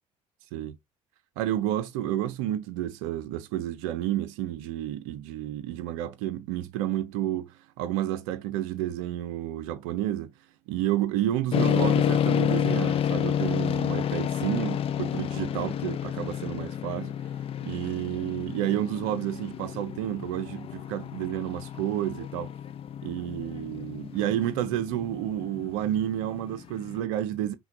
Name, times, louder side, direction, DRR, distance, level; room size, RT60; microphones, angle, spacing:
voice 1, 1.4-10.3 10.7-17.1 17.6-22.5 23.0-27.6, right 12 dB, 60° right, 0.5 m, -30 dB
sound 1, 11.5-27.0, left 9 dB, 35° left, 0.4 m, -30 dB
5.7 x 2.2 x 3.6 m
figure-of-eight pair, 55°, 17 cm